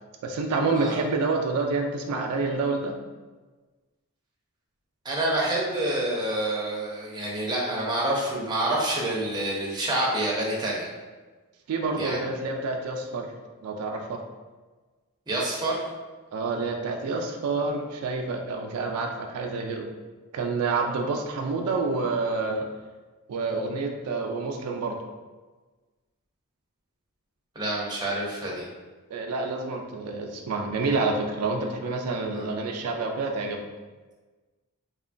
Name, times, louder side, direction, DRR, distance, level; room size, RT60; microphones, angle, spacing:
voice 1, 0.2-2.9 11.7-13.3 13.6-14.2 16.3-19.9 20.3-22.6 23.3-25.0 29.1-33.6, right 3 dB, 85° right, 3 dB, 0.3 m, -28 dB
voice 2, 5.0-10.9 11.9-12.2 15.3-15.8 27.6-28.7 32.3-32.6, right 1 dB, 20° right, -4 dB, 0.5 m, -27 dB
3.0 x 2.2 x 2.5 m, 1.3 s
head